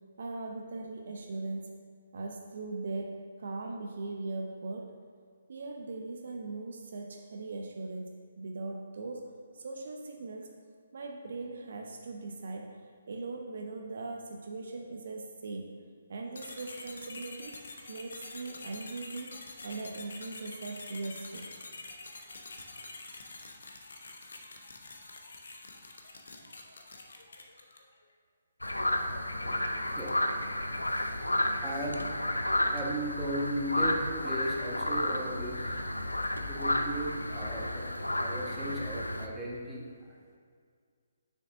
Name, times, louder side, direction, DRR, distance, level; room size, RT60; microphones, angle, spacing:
voice 1, 0.0-1.8 2.1-5.0 5.5-10.6 10.9-15.8 16.1-17.6 17.9-19.4 19.6-21.5, right 3 dB, 55° right, 3 dB, 0.6 m, -40 dB
sound 1, 16.3-27.9, left 3 dB, 65° left, 0.9 m, -46 dB
sound 2, 28.6-39.3, left 1 dB, 85° left, 0.5 m, -32 dB
voice 2, 28.8-30.5 31.6-32.1 32.7-35.8 36.5-37.9 38.2-40.4, right 1 dB, 10° right, -5 dB, 1.2 m, -37 dB
6.5 x 6.4 x 3.8 m, 2.1 s
figure-of-eight pair, 135°, 0 cm